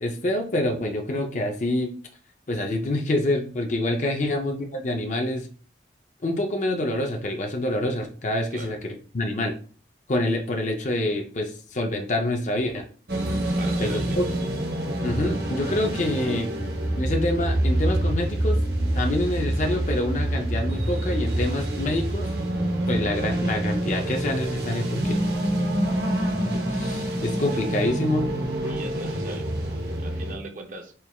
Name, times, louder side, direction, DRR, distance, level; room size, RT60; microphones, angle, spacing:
voice 1, 0.0-1.9 2.5-5.5 6.2-9.6 10.1-12.9 13.8-14.2 15.0-16.5 17.0-18.6 18.9-22.3 22.9-25.1 26.5-28.3, left 1 dB, 40° left, 3 dB, 0.5 m, -26 dB
sound 1, 13.1-30.3, right 1 dB, 60° right, 0.9 m, -26 dB
voice 2, 13.6-14.2 27.5-27.6 28.7-29.5 30.0-30.9, right 2 dB, 45° right, 4 dB, 0.6 m, -39 dB
4.4 x 3.3 x 2.3 m, 0.40 s
head